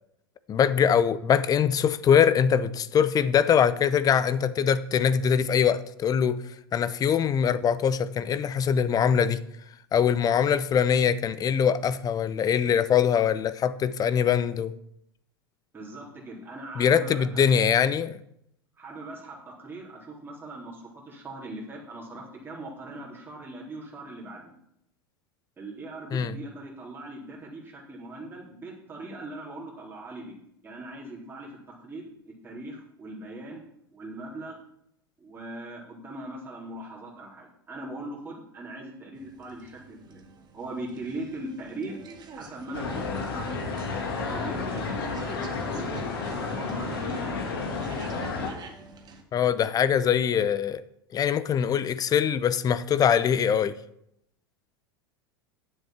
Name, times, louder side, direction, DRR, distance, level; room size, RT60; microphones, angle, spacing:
voice 1, 0.5-6.4 6.7-9.4 9.9-14.7 16.8-18.2 26.1-26.3 49.3-50.8 51.1-53.7, left 8 dB, 30° left, 0.8 m, -23 dB
voice 2, 15.7-17.4 18.8-24.5 25.6-30.3 30.6-31.5 31.8-33.6 33.9-34.6 35.2-40.3 40.5-42.0 42.3-43.2 44.3-47.5, right 2 dB, 15° right, 3.9 m, -40 dB
sound 1, 39.1-49.2, right 5 dB, 35° right, 1.9 m, -49 dB
sound 2, 42.7-48.5, left 4 dB, 70° left, 2.4 m, -31 dB
9.9 x 7.7 x 5.9 m
figure-of-eight pair, 85°, 13 cm